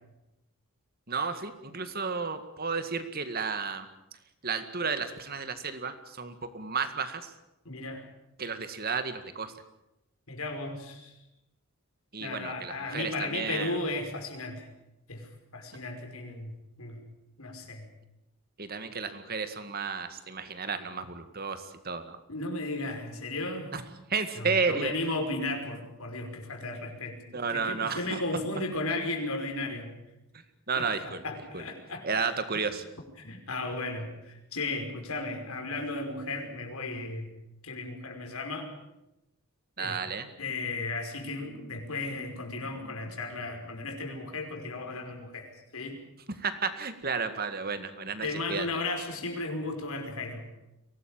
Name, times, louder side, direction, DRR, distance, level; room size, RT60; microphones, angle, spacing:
voice 1, 1.1-3.9 4.4-7.3 8.4-9.5 12.1-13.8 18.6-22.2 23.7-23.8 24.1-24.9 27.3-28.2 30.7-31.2 31.5-31.6 32.0-32.8 39.8-40.3 46.4-48.7, right 5 dB, 45° right, 10 dB, 1.9 m, -32 dB
voice 2, 7.7-8.1 10.3-11.1 12.2-14.7 15.1-17.0 17.4-17.9 22.3-23.7 24.4-29.9 30.8-32.6 33.2-37.3 37.6-38.7 39.8-40.0 40.4-46.0 48.2-50.4, left 2 dB, 75° left, 3 dB, 5.3 m, -35 dB
23.5 x 18.5 x 9.0 m, 0.90 s
head